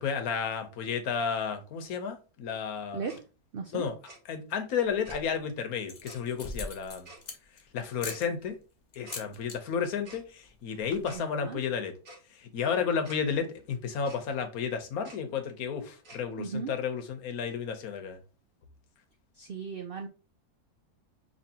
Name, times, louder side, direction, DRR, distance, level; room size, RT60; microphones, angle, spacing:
voice 1, 0.0-3.0 3.7-3.9 4.3-7.1 7.7-8.6 8.9-11.9 12.3-18.2, left 6 dB, 70° left, 1.2 m, -32 dB
Tick-tock, 3.0-3.2 4.0-4.2 5.0-5.2 6.0-6.2 7.0-7.2 8.0-8.2 9.0-9.2 10.0-10.2 11.0-11.2 12.0-12.2 13.0-13.2 14.0-14.2 15.0-15.2 16.0-16.2, right 2 dB, 60° right, 2.2 m, -49 dB
voice 2, 3.5-3.9 11.1-11.6 16.4-16.7 19.3-20.1, right 6 dB, 80° right, 0.5 m, -36 dB
sound 1, 4.9-5.4 5.8-7.6 8.0-8.2 8.9-9.6 9.9-10.2 10.4-10.5 10.7-11.2, left 3 dB, 45° left, 0.6 m, -41 dB
5.2 x 2.9 x 2.8 m
omnidirectional pair, 1.6 m